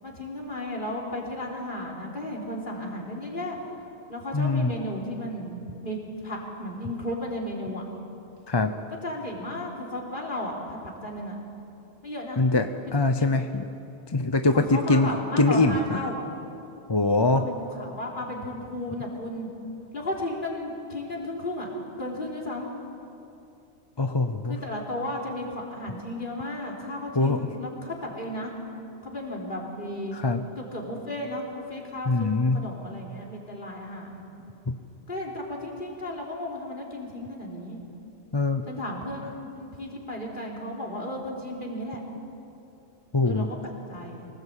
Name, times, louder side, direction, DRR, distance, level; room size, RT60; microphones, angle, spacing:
voice 1, 0.0-3.6 4.1-6.0 6.2-7.8 9.0-11.4 12.0-12.4 14.5-16.2 17.3-19.5 19.9-21.7 22.0-22.7 24.5-28.5 29.0-30.2 30.6-34.3 35.1-37.8 38.7-42.0 43.2-44.3, left 1 dB, 45° left, 0 dB, 3.8 m, -34 dB
voice 2, 4.3-4.7 8.5-8.7 12.4-13.6 14.1-15.1 15.4-16.0 16.9-17.5 24.0-24.6 27.2-27.4 30.1-30.4 32.1-32.6 34.7-34.8 38.3-38.6 43.1-43.5, left 2 dB, 25° left, 7 dB, 0.7 m, -23 dB
24.0 x 18.5 x 8.4 m, 2.8 s
omnidirectional pair, 1.2 m